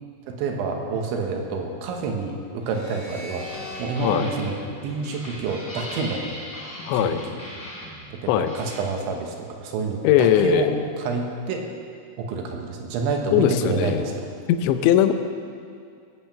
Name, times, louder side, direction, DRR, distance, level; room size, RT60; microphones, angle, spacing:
voice 1, 0.3-3.5 3.8-6.3 6.9-7.2 8.1-10.7 11.0-11.6 12.2-14.3, right 4 dB, 75° right, 2 dB, 3.4 m, -28 dB
sound 1, 2.6-5.9, left 2 dB, 30° left, 1.5 m, -42 dB
sound 2, 3.4-8.8, equal, 15° left, 2.5 m, -39 dB
voice 2, 6.9-7.2 8.3-8.5 10.0-10.8 13.3-14.0 14.5-15.1, left 11 dB, 80° left, 9 dB, 2.7 m, -20 dB
18.0 x 8.0 x 7.5 m, 2.3 s
omnidirectional pair, 5.9 m